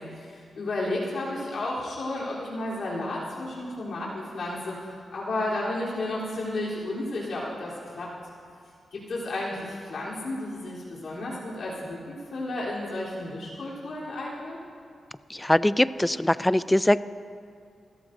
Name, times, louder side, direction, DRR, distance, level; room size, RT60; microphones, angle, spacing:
voice 1, 0.0-4.7 5.1-8.1 8.9-14.6, left 2 dB, 70° left, -7 dB, 3.4 m, -32 dB
voice 2, 15.3-17.0, left 1 dB, 10° left, 16 dB, 0.4 m, -22 dB
28.5 x 13.5 x 2.6 m, 2.3 s
cardioid pair, 75°, 0 cm